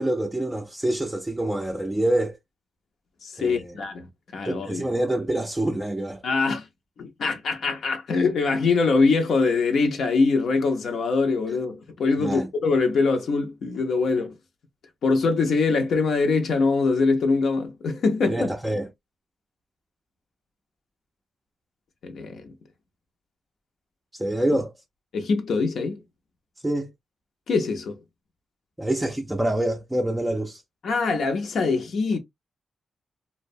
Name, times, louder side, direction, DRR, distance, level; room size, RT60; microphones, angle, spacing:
voice 1, 0.0-2.4 3.4-3.8 4.4-6.2 12.2-12.5 18.3-18.9 24.1-24.7 26.6-26.9 28.8-30.6, right 1 dB, 10° right, 0.4 m, -26 dB
voice 2, 3.2-4.1 4.3-4.8 6.2-6.7 7.0-14.3 15.0-18.5 22.0-22.5 25.1-26.0 27.5-28.0 30.8-32.2, left 4 dB, 70° left, 0.5 m, -23 dB
2.7 x 2.0 x 2.5 m
cardioid pair, 95°, 0 cm